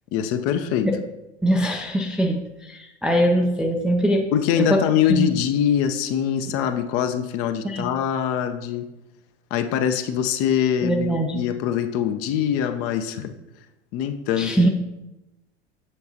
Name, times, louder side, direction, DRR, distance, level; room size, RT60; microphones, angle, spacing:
voice 1, 0.1-0.9 4.3-8.9 9.5-13.3 13.9-14.7, left 9 dB, 40° left, 9 dB, 0.6 m, -23 dB
voice 2, 1.4-4.3 4.6-4.8 5.1-5.3 7.6-7.9 10.8-11.4 14.4-14.7, right 1 dB, ahead, 2 dB, 0.4 m, -22 dB
7.2 x 6.6 x 2.8 m, 0.99 s
figure-of-eight pair, 85°, 35 cm